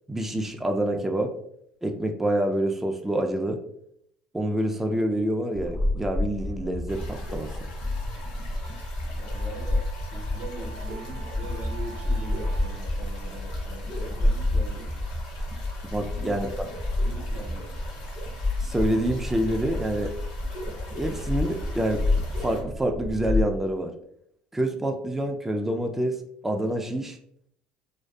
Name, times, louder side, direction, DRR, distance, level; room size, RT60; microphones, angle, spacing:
voice 1, 0.1-1.3 1.8-3.6 4.3-7.5 15.9-16.7 18.6-20.1 21.0-22.0 22.4-23.9 24.5-26.2 26.4-27.2, right 1 dB, 10° right, 3 dB, 0.3 m, -27 dB
sound 1, 5.5-23.4, left 2 dB, 30° left, 0.7 m, -29 dB
sound 2, 6.9-22.6, left 2 dB, 90° left, 0.7 m, -46 dB
Wind instrument woodwind instrument, 8.6-12.8, right 3 dB, 70° left, 1.2 m, -48 dB
voice 2, 9.1-14.9 15.9-16.5 17.0-17.6, right 3 dB, 65° right, 0 dB, 0.7 m, -41 dB
2.5 x 2.3 x 2.2 m, 0.70 s
supercardioid pair, 85°, 3 cm